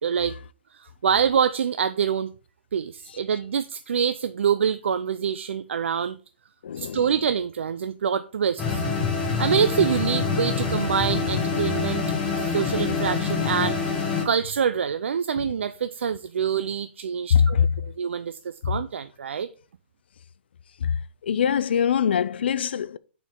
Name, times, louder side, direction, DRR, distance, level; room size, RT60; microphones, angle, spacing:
voice 1, 0.0-0.4 0.7-2.3 2.7-6.2 6.8-8.8 9.4-12.0 12.4-13.8 14.2-19.5, right 7 dB, 85° right, 0.4 m, -25 dB
voice 2, 6.6-7.0 15.4-15.5 17.3-17.7 18.6-18.8 20.8-20.9 21.2-23.0, left 7 dB, 60° left, 0.4 m, -22 dB
sound 1, 8.6-14.3, left 5 dB, 10° left, 1.1 m, -26 dB
8.3 x 4.6 x 3.7 m
hypercardioid pair, 175°, 6 cm